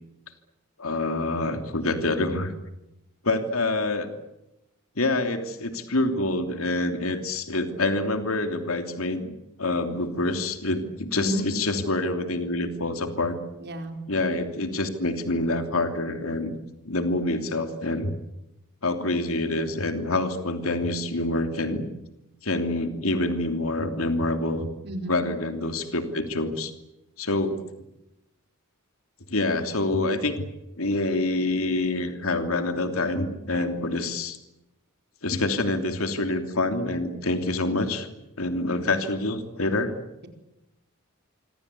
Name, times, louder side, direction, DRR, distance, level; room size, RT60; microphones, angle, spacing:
voice 1, 0.8-2.5 3.2-4.1 5.0-9.3 9.6-13.4 14.1-16.5 16.8-18.1 18.8-21.8 22.4-24.7 25.1-26.7 27.2-27.6 29.3-30.4 30.8-34.4 35.2-38.1 38.4-39.9, left 2 dB, 80° left, 6 dB, 3.0 m, -26 dB
voice 2, 11.2-11.5 13.6-14.0 24.8-25.2, right 1 dB, 50° right, 4 dB, 4.9 m, -31 dB
27.0 x 25.0 x 8.5 m, 0.93 s
head